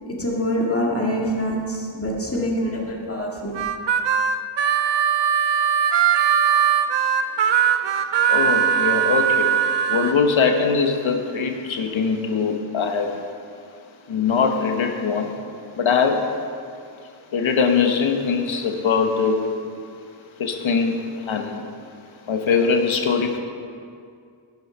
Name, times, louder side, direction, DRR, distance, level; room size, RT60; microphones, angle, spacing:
voice 1, 0.1-3.5, equal, 30° left, -2 dB, 2.1 m, -25 dB
Harmonica, 3.5-10.1, right 8 dB, 65° right, 0.6 m, -20 dB
voice 2, 8.3-9.5 9.9-13.1 14.1-15.3 15.8-16.2 17.3-19.4 20.4-21.6 22.3-23.4, left 5 dB, 85° left, 5 dB, 1.1 m, -21 dB
11.0 x 7.7 x 5.4 m, 2.3 s
wide cardioid pair, 90°, 46 cm